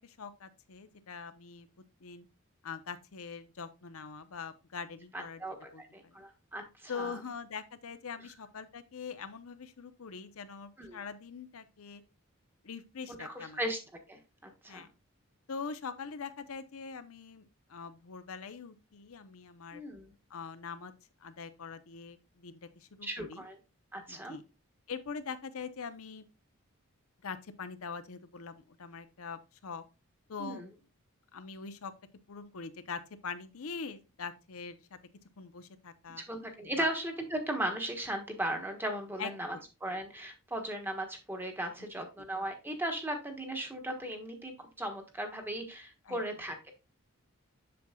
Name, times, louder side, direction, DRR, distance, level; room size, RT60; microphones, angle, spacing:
voice 1, 0.0-1.7 2.0-2.3 2.6-5.4 5.7-6.2 6.9-12.0 12.6-13.6 14.7-14.9 15.5-19.8 20.3-20.9 21.2-23.4 24.1-24.4 24.9-26.2 27.2-29.8 30.3-30.6 31.3-31.9 32.3-34.8 35.4-36.2 36.8-36.9 39.2-39.6 46.1-46.2, left 5 dB, 80° left, 0.7 m, -43 dB
voice 2, 5.1-7.2 10.8-11.0 13.1-13.8 14.1-14.9 19.7-20.1 23.0-23.6 23.9-24.4 30.4-30.7 36.2-46.7, right 1 dB, 10° right, 1.2 m, -37 dB
7.7 x 6.9 x 2.3 m
head